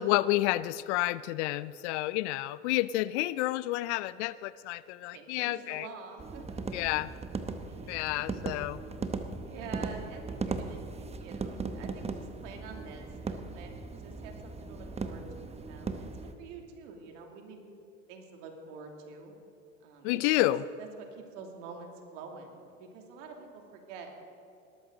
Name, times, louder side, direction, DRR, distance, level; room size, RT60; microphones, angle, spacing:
voice 1, 0.0-5.9 6.7-7.1 7.9-8.8 20.0-20.6, left 17 dB, 60° left, 18 dB, 0.5 m, -30 dB
voice 2, 5.1-6.8 7.6-8.2 9.4-16.1 16.4-17.6 18.1-19.3 19.8-20.5 20.8-24.1, right 5 dB, 65° right, 2 dB, 2.8 m, -47 dB
sound 1, 6.2-16.3, right 4 dB, 15° right, 1.0 m, -38 dB
19.0 x 13.5 x 3.9 m, 2.6 s
hypercardioid pair, 90°, 39 cm